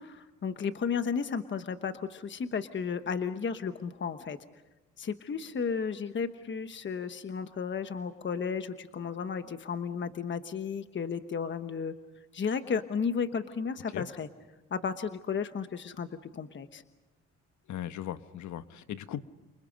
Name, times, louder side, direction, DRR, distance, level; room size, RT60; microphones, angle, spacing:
voice 1, 0.0-4.4 5.0-11.9 12.3-14.3 14.7-16.8, left 6 dB, 40° left, 9 dB, 1.2 m, -33 dB
voice 2, 17.7-19.2, left 11 dB, 70° left, 11 dB, 1.2 m, -38 dB
29.5 x 27.5 x 5.3 m, 1.1 s
cardioid pair, 90°, 30 cm